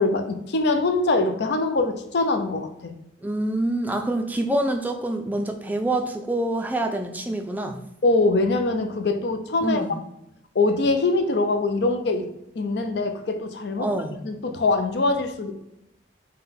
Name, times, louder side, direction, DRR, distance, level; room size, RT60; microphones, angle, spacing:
voice 1, 0.0-2.9 8.0-9.8 10.5-12.3 12.6-13.9 14.2-15.5, left 3 dB, 60° left, 7 dB, 0.5 m, -23 dB
voice 2, 3.2-7.7 9.6-10.0 13.8-14.2, right 1 dB, 10° right, 5 dB, 0.4 m, -26 dB
5.6 x 2.2 x 3.5 m, 0.85 s
head